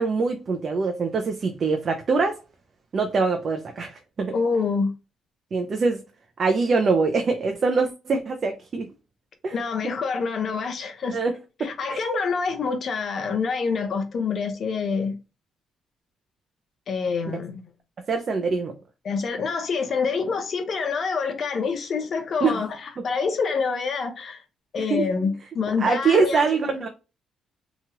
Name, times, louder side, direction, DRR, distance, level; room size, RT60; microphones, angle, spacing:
voice 1, 0.0-2.4 2.9-4.3 5.5-6.0 6.4-8.9 9.4-9.5 9.8-9.9 11.1-11.3 11.6-12.0 18.1-18.7 22.4-22.6 23.0-23.1 24.9-25.1 25.8-26.9, right 4 dB, 50° right, 0.5 m, -23 dB
voice 2, 4.3-4.9 9.5-11.2 11.6-15.2 16.9-17.7 19.0-24.4 24.7-26.4, left 5 dB, 55° left, 0.7 m, -26 dB
2.9 x 2.3 x 2.9 m
cardioid pair, 90°, 0 cm